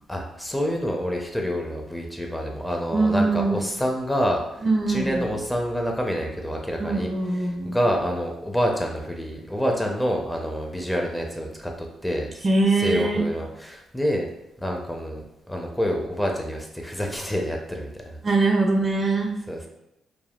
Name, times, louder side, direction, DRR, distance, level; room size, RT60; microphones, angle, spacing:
voice 1, 0.1-12.5 12.7-14.3 14.6-18.2 19.5-19.7, equal, 10° left, 1 dB, 0.6 m, -27 dB
voice 2, 2.9-3.6 4.6-5.2 6.8-7.8 12.4-13.2 18.2-19.3, right 3 dB, 35° right, 2 dB, 0.5 m, -22 dB
3.4 x 2.1 x 2.3 m, 0.87 s
cardioid pair, 70°, 0 cm